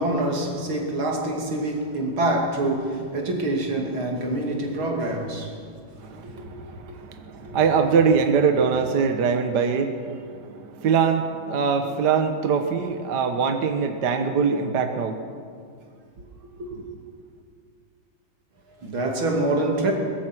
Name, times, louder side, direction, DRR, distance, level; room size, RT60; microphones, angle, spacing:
voice 1, 0.0-5.6 6.2-6.5 6.8-7.0 7.4-7.6 16.6-16.8 18.8-19.9, right 2 dB, 85° right, 3.5 m, -26 dB
voice 2, 6.0-15.3, right 6 dB, 60° right, 1.7 m, -23 dB
22.5 x 21.5 x 6.1 m
omnidirectional pair, 2.2 m